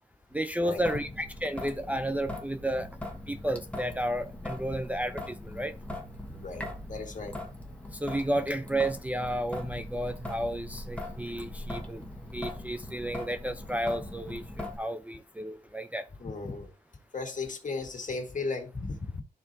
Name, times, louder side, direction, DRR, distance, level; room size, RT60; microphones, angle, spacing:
voice 1, 0.3-2.9 3.3-5.7 7.9-12.0 12.3-16.1, right 1 dB, 10° right, 0.5 m, -32 dB
Traffic noise roadway noise / Drip / Trickle dribble, 0.8-14.8, left 1 dB, 5° left, 1.3 m, -41 dB
voice 2, 6.3-7.4 16.2-16.7 17.1-19.2, left 3 dB, 50° left, 1.7 m, -36 dB
12.0 x 4.3 x 2.7 m
wide cardioid pair, 85°, 17 cm